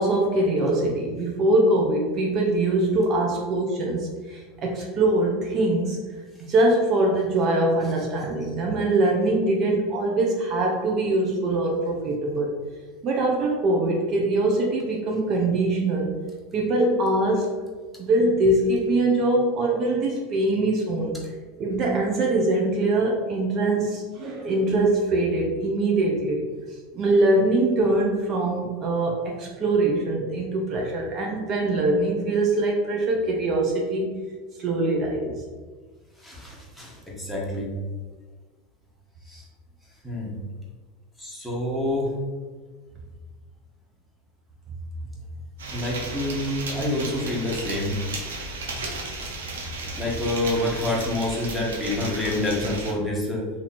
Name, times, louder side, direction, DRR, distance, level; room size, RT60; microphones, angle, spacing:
voice 1, 0.0-6.0 6.4-12.5 13.0-16.1 16.5-17.5 18.1-21.2 21.6-26.4 26.9-34.2 34.6-35.4, right 2 dB, 40° right, -1 dB, 0.7 m, -23 dB
voice 2, 36.2-37.7 39.3-39.4 40.0-40.3 41.2-42.1 45.7-48.0 50.0-53.5, left 1 dB, 5° left, -4 dB, 1.2 m, -27 dB
sound 1, 45.6-52.9, right 2 dB, 85° right, 0.7 m, -34 dB
2.9 x 2.8 x 4.2 m, 1.4 s
hypercardioid pair, 105°, 0 cm